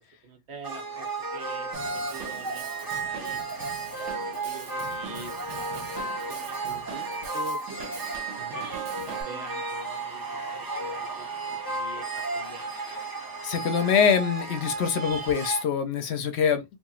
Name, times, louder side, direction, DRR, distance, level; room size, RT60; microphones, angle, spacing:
voice 1, 0.2-1.1 1.3-3.4 3.9-4.1 4.4-8.2 8.5-8.7 9.0-11.3 11.7-12.1 12.3-13.0, right 4 dB, 65° right, 1.1 m, -45 dB
sound 1, 0.6-15.6, right 3 dB, 20° right, 0.7 m, -33 dB
Drum kit / Drum, 1.7-9.2, right 4 dB, 85° right, 1.1 m, -43 dB
voice 2, 13.4-16.6, left 7 dB, 70° left, 0.8 m, -24 dB
2.8 x 2.5 x 2.3 m
omnidirectional pair, 1.2 m